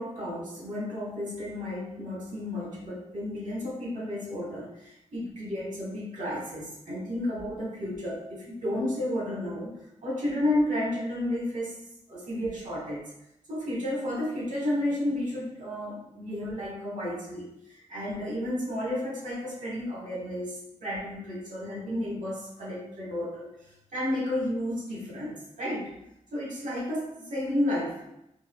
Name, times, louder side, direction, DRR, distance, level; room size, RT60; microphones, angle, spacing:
voice 1, 0.0-11.7 12.1-13.0 13.5-23.5 23.9-25.9 26.3-28.0, left 1 dB, 80° right, -5 dB, 1.4 m, -32 dB
4.7 x 2.5 x 2.3 m, 0.84 s
cardioid pair, 65°, 13 cm